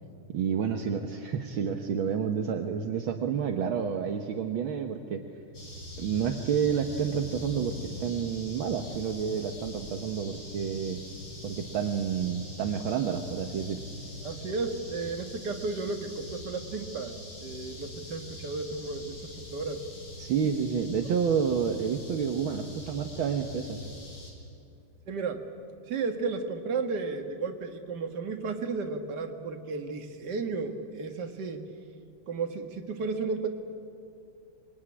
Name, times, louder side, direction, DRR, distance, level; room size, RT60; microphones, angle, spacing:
voice 1, 0.3-5.2 6.0-11.0 11.4-13.8 20.2-23.9, right 7 dB, 65° right, 4 dB, 1.9 m, -29 dB
sound 1, 5.5-24.3, left 1 dB, 65° left, 4.9 m, -43 dB
voice 2, 14.2-19.8 25.1-25.4 25.9-31.6 32.3-33.5, right 4 dB, 50° right, 5 dB, 2.2 m, -33 dB
26.0 x 21.5 x 9.8 m, 2.5 s
omnidirectional pair, 2.4 m